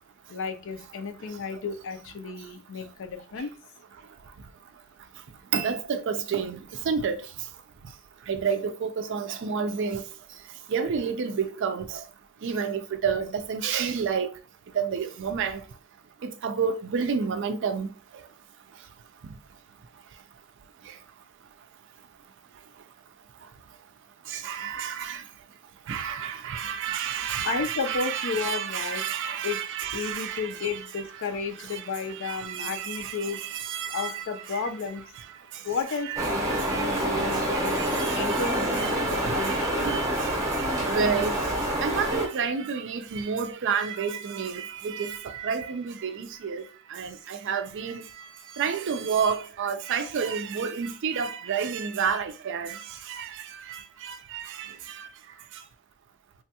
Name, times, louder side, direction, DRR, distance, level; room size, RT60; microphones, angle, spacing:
voice 1, 0.3-3.5 27.4-29.1 29.4-29.6 29.9-33.4 33.9-35.0 35.6-39.8, left 5 dB, 60° left, 0.5 m, -33 dB
voice 2, 5.5-6.6 6.8-7.3 8.3-10.0 10.7-12.0 12.4-14.3 14.7-15.6 16.2-17.9 20.9-21.0 24.3-25.2 25.9-30.7 31.7-34.7 35.2-35.3 36.1-55.1, right 6 dB, 55° right, 0.4 m, -30 dB
sound 1, 36.2-42.3, equal, 15° right, 0.7 m, -27 dB
3.3 x 2.2 x 2.7 m
head